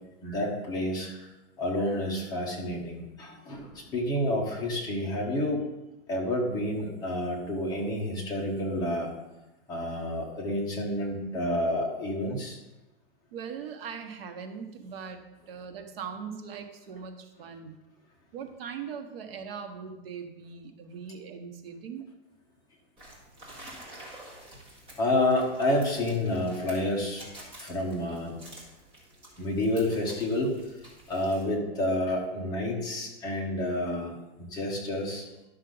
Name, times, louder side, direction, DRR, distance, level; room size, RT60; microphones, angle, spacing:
voice 1, 0.2-1.1 1.6-5.6 6.1-9.1 9.7-12.6 25.0-27.2 27.6-28.4 29.4-30.5 31.1-34.2 34.5-35.2, left 1 dB, 10° left, -3 dB, 1.2 m, -29 dB
voice 2, 13.3-15.2 15.5-17.8 18.3-22.1, right 6 dB, 70° right, 6 dB, 1.3 m, -40 dB
sound 1, 23.0-31.4, right 1 dB, 15° right, 2.0 m, -49 dB
11.5 x 6.4 x 3.9 m, 1.0 s
supercardioid pair, 180°, 31 cm